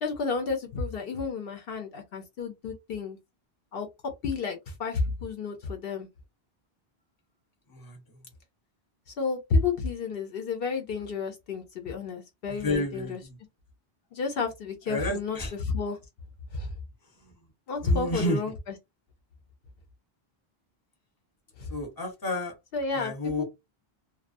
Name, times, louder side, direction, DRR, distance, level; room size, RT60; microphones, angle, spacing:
voice 1, 0.0-3.2 3.7-3.9 4.2-6.1 9.2-13.2 14.1-16.0 16.5-16.7 17.7-18.5 21.6-21.7 22.7-23.1 23.4-23.5, left 4 dB, 70° left, 0.8 m, -31 dB
voice 2, 7.7-8.2 12.5-13.4 14.9-15.5 17.2-17.3 17.8-18.4 21.7-22.5 22.9-23.4, left 1 dB, 25° left, 0.8 m, -31 dB
2.4 x 2.2 x 2.4 m
omnidirectional pair, 1.0 m